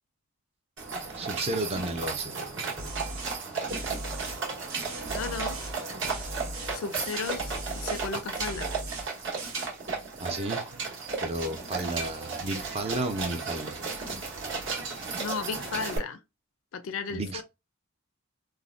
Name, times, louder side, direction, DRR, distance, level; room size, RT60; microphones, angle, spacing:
sound 1, 0.8-16.0, right 4 dB, 55° right, 1.1 m, -34 dB
voice 1, 1.2-2.3 10.2-10.8 11.2-13.7 17.1-17.4, right 2 dB, 30° right, 0.4 m, -33 dB
sound 2, 2.8-3.4 3.7-4.4 4.7-5.8 6.0-6.8 7.1-8.1 8.4-9.1 9.4-9.7, right 1 dB, 80° right, 1.1 m, -38 dB
voice 2, 5.1-5.6 6.7-8.7 15.2-16.2 16.7-17.4, left 5 dB, 65° left, 0.4 m, -35 dB
3.4 x 2.1 x 2.3 m
head